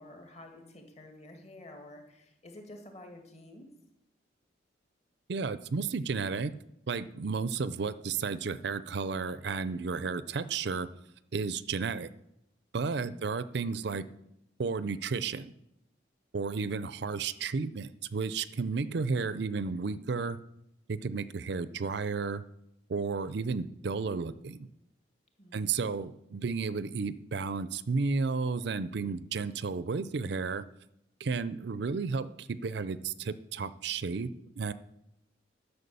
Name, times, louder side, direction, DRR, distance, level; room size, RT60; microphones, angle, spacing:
voice 1, 0.0-3.7 13.0-13.1 25.4-26.2, left 1 dB, 35° left, 3 dB, 2.1 m, -50 dB
voice 2, 5.3-6.5 6.9-10.9 11.3-12.1 12.7-14.0 14.6-15.5 16.3-20.4 20.9-22.4 22.9-24.7 25.5-30.7 31.2-34.3 34.6-34.7, right 4 dB, 60° right, 15 dB, 0.5 m, -32 dB
11.0 x 6.9 x 6.8 m, 0.82 s
head